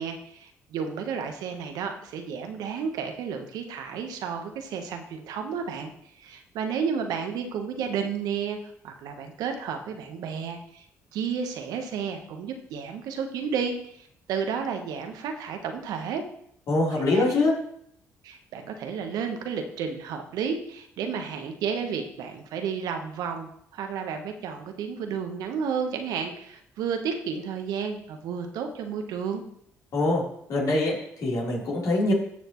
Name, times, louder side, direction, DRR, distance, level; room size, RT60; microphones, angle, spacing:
voice 1, 0.0-5.9 6.2-8.6 8.8-10.8 11.1-13.8 14.3-16.2 17.0-17.3 18.2-29.4, right 6 dB, 75° right, 5 dB, 1.2 m, -32 dB
voice 2, 16.7-17.5 29.9-30.2 30.5-32.1, left 2 dB, 65° left, -4 dB, 3.8 m, -24 dB
13.5 x 6.4 x 3.1 m, 0.69 s
hypercardioid pair, 55°, 7 cm